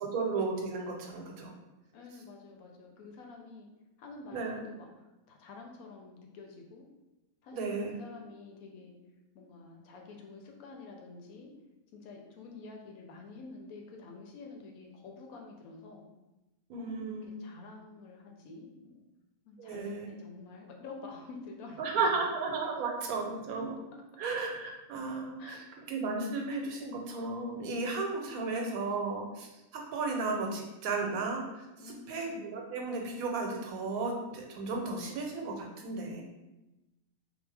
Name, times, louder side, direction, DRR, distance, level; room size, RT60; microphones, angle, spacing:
voice 1, 0.0-1.5 4.3-4.6 7.5-7.9 16.7-17.3 19.6-20.1 21.8-36.2, right 3 dB, 90° right, 1 dB, 1.1 m, -34 dB
voice 2, 1.9-3.7 4.0-6.9 7.4-8.9 9.3-11.5 11.9-16.0 16.8-19.0 19.5-21.8 25.4-25.6 31.8-32.2, left 3 dB, 85° left, 1 dB, 1.0 m, -48 dB
2.7 x 2.1 x 3.2 m, 1.0 s
omnidirectional pair, 1.5 m